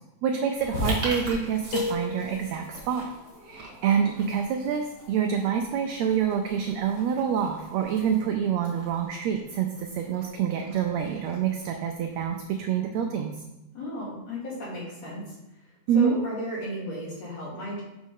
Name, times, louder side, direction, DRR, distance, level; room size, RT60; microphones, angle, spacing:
voice 1, 0.2-3.0 3.5-13.3 15.9-16.2, right 7 dB, 80° right, 4 dB, 1.6 m, -27 dB
sound 1, 0.5-12.7, right 2 dB, 40° right, 1.8 m, -43 dB
sound 2, 0.7-8.3, left 2 dB, 60° left, 1.8 m, -40 dB
sound 3, 1.7-2.8, left 4 dB, 85° left, 2.2 m, -33 dB
voice 2, 13.7-15.4 15.9-17.8, equal, 40° left, -6 dB, 2.7 m, -34 dB
7.1 x 5.3 x 3.7 m, 0.98 s
omnidirectional pair, 3.4 m